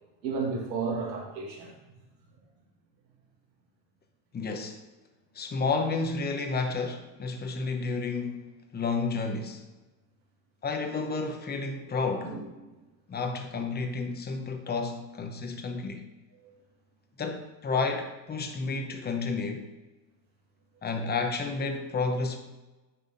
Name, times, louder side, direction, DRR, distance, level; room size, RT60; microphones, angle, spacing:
voice 1, 0.2-1.7 12.2-12.7 16.4-16.5, right 4 dB, 90° right, 1.9 m, -33 dB
voice 2, 4.3-4.8 5.3-8.5 8.7-9.6 10.6-12.3 13.1-16.0 17.2-19.7 20.8-22.4, left 4 dB, 20° left, 0.9 m, -31 dB
10.0 x 3.5 x 4.1 m
hypercardioid pair, 95°, 50 cm